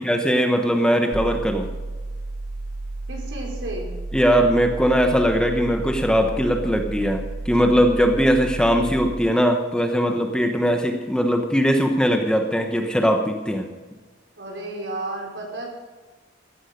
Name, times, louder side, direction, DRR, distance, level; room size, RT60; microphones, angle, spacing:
voice 1, 0.0-1.7 4.1-13.7, equal, 5° left, 4 dB, 1.1 m, -20 dB
sound 1, 1.1-9.1, right 2 dB, 45° right, 1.2 m, -32 dB
voice 2, 3.1-3.9 14.4-15.7, right 2 dB, 70° right, -1 dB, 5.2 m, -32 dB
16.0 x 12.0 x 5.3 m, 1.3 s
head